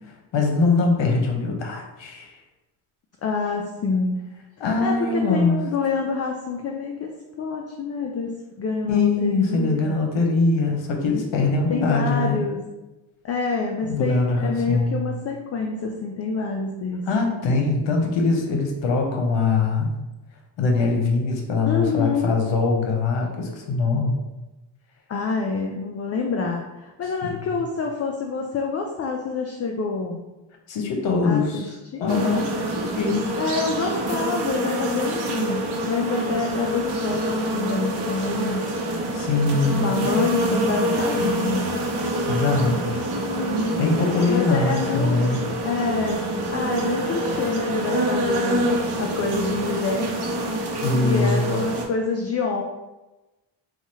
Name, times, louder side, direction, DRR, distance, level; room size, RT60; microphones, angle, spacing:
voice 1, 0.3-2.3 4.6-5.6 8.9-12.4 13.8-15.0 17.1-19.9 20.6-24.2 27.2-27.4 30.7-31.7 32.0-32.5 32.8-33.3 39.1-39.9 42.2-42.9 43.8-45.4 50.8-51.4, left 3 dB, 65° left, 2 dB, 0.9 m, -22 dB
voice 2, 3.2-4.2 4.8-7.1 7.4-10.0 11.7-12.6 13.2-17.3 21.6-22.4 25.1-30.2 31.2-32.3 33.4-38.7 39.8-41.9 42.4-42.8 43.1-43.8 44.3-45.3 45.6-48.7 49.0-50.2 51.0-52.6, left 4 dB, 35° left, 1 dB, 0.4 m, -27 dB
sound 1, 32.1-51.8, right 1 dB, 55° right, 0.8 m, -26 dB
2.9 x 2.4 x 4.2 m, 1.1 s
cardioid pair, 80°, 47 cm